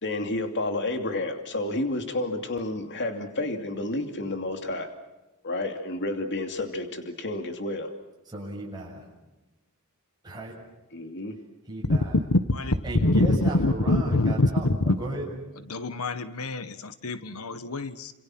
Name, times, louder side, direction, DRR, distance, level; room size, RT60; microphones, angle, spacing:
voice 1, 0.0-4.9 5.4-7.9 10.9-11.4, left 2 dB, 55° left, 2.8 m, -30 dB
voice 2, 8.3-9.0 10.2-10.5 11.7-12.2 12.8-15.3, right 2 dB, 20° right, 7.4 m, -35 dB
voice 3, 12.3-12.7 13.0-15.0 15.7-18.1, left 2 dB, 75° left, 1.4 m, -24 dB
28.5 x 27.5 x 6.1 m
head